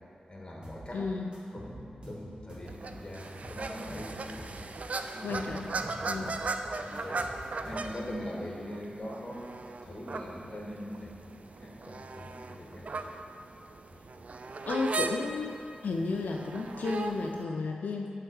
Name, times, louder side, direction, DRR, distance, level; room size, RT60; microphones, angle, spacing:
voice 1, 0.3-1.0 1.5-4.6 5.1-5.4 6.0-6.3 6.8-7.2 7.5-13.1, equal, 30° left, -3 dB, 1.4 m, -42 dB
sound 1, 0.6-0.9 1.3-2.8 3.2-4.6 5.1-6.5 6.9-8.2, right 1 dB, 35° right, 1.6 m, -47 dB
voice 2, 0.9-1.3 5.2-5.7 6.1-6.3 14.7-15.5 15.8-18.1, left 3 dB, 85° left, 1 dB, 0.3 m, -32 dB
sound 2, 2.7-17.4, right 3 dB, 55° right, 0.3 m, -38 dB
7.8 x 3.6 x 4.8 m, 2.4 s
cardioid pair, 65°, 3 cm